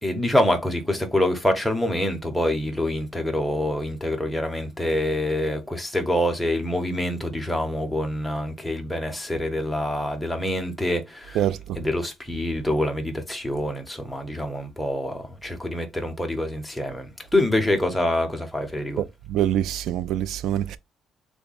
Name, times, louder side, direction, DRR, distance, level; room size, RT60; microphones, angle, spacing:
voice 1, 0.0-11.5 11.7-19.0, left 1 dB, ahead, 0.8 m, -26 dB
voice 2, 19.0-20.8, right 11 dB, 80° right, 0.3 m, -25 dB
3.5 x 2.1 x 3.9 m
cardioid pair, 135°, 0 cm